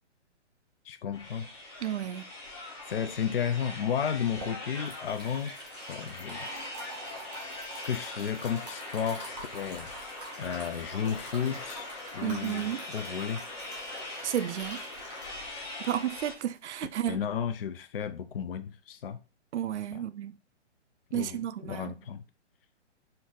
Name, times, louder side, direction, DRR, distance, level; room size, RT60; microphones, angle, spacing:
voice 1, 0.9-1.5 2.9-5.5 5.9-6.5 7.2-7.3 7.7-9.9 10.4-11.9 12.1-13.4 17.1-19.2 19.9-20.0 21.1-21.4 21.7-22.2, left 8 dB, 55° left, 0.4 m, -33 dB
sound 1, 1.1-16.3, left 2 dB, 25° left, 1.4 m, -42 dB
voice 2, 1.8-2.3 12.2-12.8 14.2-14.8 15.8-17.2 19.5-20.4 21.1-22.0, right 11 dB, 70° right, 0.5 m, -32 dB
sound 2, 4.0-17.0, right 2 dB, 5° right, 0.6 m, -47 dB
4.4 x 2.6 x 3.7 m
hypercardioid pair, 175°, 36 cm